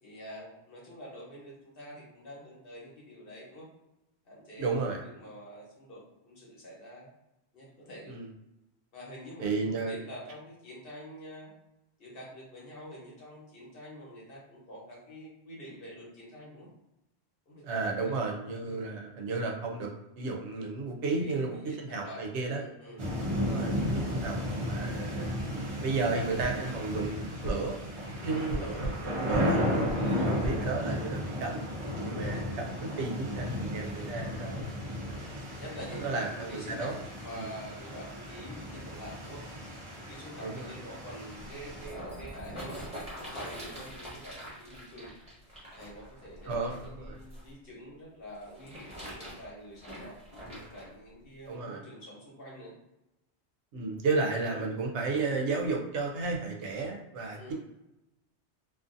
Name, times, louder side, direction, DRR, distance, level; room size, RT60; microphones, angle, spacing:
voice 1, 0.0-3.7 4.2-7.1 7.5-8.1 8.9-11.5 12.0-16.7 17.5-18.2 18.6-18.9 21.2-22.2 22.5-23.0 28.2-28.9 30.0-30.3 32.0-32.4 35.6-39.4 39.9-42.8 43.2-45.1 45.7-50.2 50.5-52.7 54.5-54.7 57.4-57.5, equal, 55° left, -5 dB, 1.1 m, -46 dB
voice 2, 4.6-5.0 8.1-8.3 9.4-10.0 17.6-19.9 20.2-22.6 23.4-25.3 25.8-27.9 28.2-29.6 30.1-31.7 32.0-34.7 35.9-36.9 37.3-37.5 40.4-40.7 46.5-47.2 50.5-50.6 51.5-51.8 53.7-57.5, right 3 dB, 85° right, 1 dB, 0.9 m, -33 dB
sound 1, 23.0-41.9, equal, 45° right, 0.4 m, -34 dB
sound 2, 26.4-26.6 27.4-27.6 28.5-29.0 29.3-29.5 29.9-30.0 30.4-30.6, right 1 dB, 85° left, 1.0 m, -34 dB
sound 3, 41.6-47.5 48.3-50.9 51.5-51.6, equal, 5° right, 1.0 m, -43 dB
2.5 x 2.4 x 2.5 m, 0.93 s
omnidirectional pair, 1.1 m